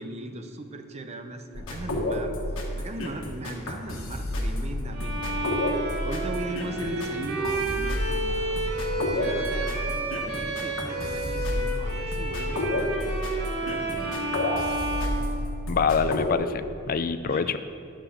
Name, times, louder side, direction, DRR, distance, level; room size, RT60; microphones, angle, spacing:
voice 1, 0.0-2.3 2.8-5.6 6.0-8.7 9.1-13.2 13.6-14.3 17.3-17.6, right 1 dB, 30° right, 6 dB, 0.6 m, -38 dB
sound 1, 1.5-16.3, left 1 dB, 65° left, 1.3 m, -30 dB
Bowed string instrument, 4.9-15.9, right 2 dB, 50° right, 1.6 m, -31 dB
voice 2, 15.7-17.6, left 5 dB, 40° left, 11 dB, 0.3 m, -25 dB
9.8 x 5.2 x 7.0 m, 2.4 s
head